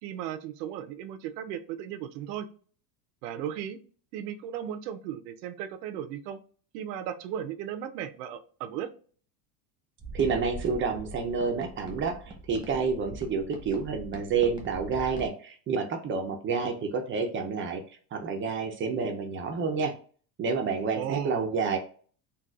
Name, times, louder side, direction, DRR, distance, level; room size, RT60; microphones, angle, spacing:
voice 1, 0.0-2.5 3.2-3.8 4.1-6.4 6.7-8.9 20.9-21.5, right 9 dB, 85° right, 10 dB, 0.7 m, -36 dB
sound 1, 10.0-15.3, right 2 dB, 10° right, 0.8 m, -42 dB
voice 2, 10.1-17.8 18.1-19.9 20.4-21.8, right 5 dB, 25° right, 4 dB, 0.5 m, -29 dB
4.0 x 2.3 x 2.3 m, 0.43 s
supercardioid pair, 130°, 48 cm